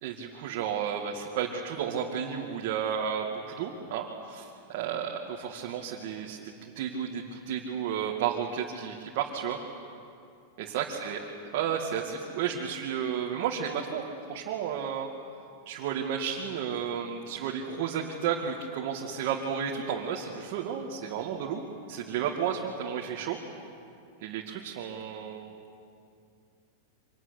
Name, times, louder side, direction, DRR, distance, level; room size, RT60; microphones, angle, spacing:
voice 1, 0.0-3.3 3.6-9.6 10.6-11.2 11.5-15.1 15.7-21.6 21.9-23.4 24.2-25.5, right 8 dB, 45° right, -1 dB, 2.2 m, -32 dB
25.0 x 20.0 x 10.0 m, 2.5 s
supercardioid pair, 170°, 0 cm